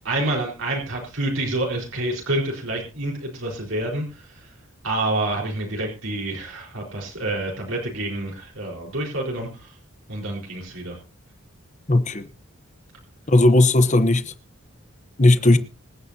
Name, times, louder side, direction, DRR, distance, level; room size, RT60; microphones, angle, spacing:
voice 1, 0.0-4.5 4.8-9.7 10.1-11.0 15.5-15.6, right 2 dB, 75° right, 4.6 m, -28 dB
voice 2, 11.9-12.2 13.3-14.2 15.2-15.6, left 2 dB, 35° left, 1.0 m, -16 dB
25.5 x 9.4 x 2.8 m
head